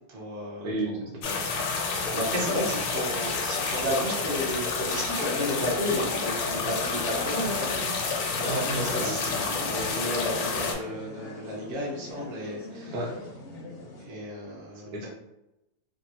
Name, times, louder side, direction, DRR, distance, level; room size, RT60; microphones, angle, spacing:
voice 1, 0.1-0.7 1.3-1.6 2.1-13.0 14.0-14.9, equal, 55° right, -4 dB, 0.6 m, -33 dB
voice 2, 0.6-1.5 8.4-9.5 12.9-13.2 14.7-15.1, right 1 dB, 75° right, -1 dB, 1.4 m, -33 dB
sound 1, 1.2-10.7, left 4 dB, 80° left, 1.3 m, -29 dB
sound 2, 4.4-14.0, left 2 dB, 60° left, 0.7 m, -43 dB
3.5 x 2.1 x 2.7 m, 0.91 s
omnidirectional pair, 2.0 m